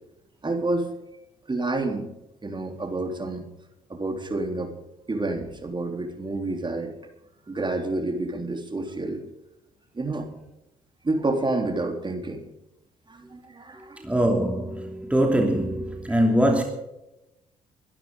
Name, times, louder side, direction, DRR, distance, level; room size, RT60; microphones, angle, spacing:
voice 1, 0.4-0.9 1.5-2.1 2.4-3.5 3.9-4.7 5.1-6.9 7.5-9.3 9.9-10.3 11.0-12.4 13.1-14.1, right 2 dB, 25° right, 3.5 m, -29 dB
voice 2, 13.8-16.6, right 1 dB, 5° right, 2.9 m, -23 dB
23.5 x 12.0 x 3.8 m
hypercardioid pair, 55°, 18 cm